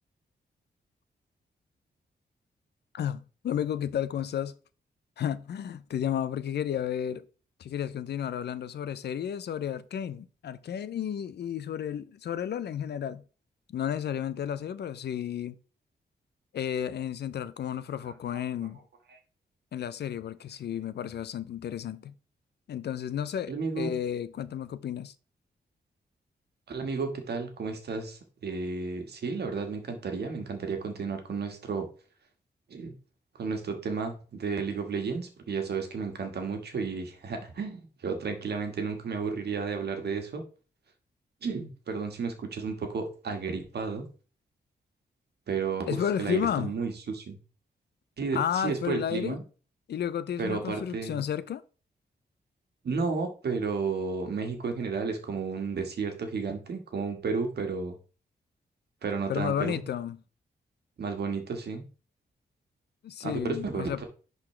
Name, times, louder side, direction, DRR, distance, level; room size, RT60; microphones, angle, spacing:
voice 1, 2.9-4.5 5.2-7.2 7.6-13.2 13.7-15.6 16.5-18.8 19.7-22.1 22.7-25.1 45.9-46.7 48.3-49.4 49.9-51.6 59.3-60.2 63.0-64.0, left 9 dB, 75° left, 0.5 m, -32 dB
voice 2, 23.5-24.0 26.7-31.9 32.7-32.9 33.4-40.4 41.4-44.1 45.5-47.4 48.2-49.4 50.4-51.2 52.8-58.0 59.0-59.8 61.0-61.8 63.2-64.1, right 5 dB, 70° right, 1.6 m, -32 dB
10.5 x 4.0 x 3.3 m
cardioid pair, 85°, 18 cm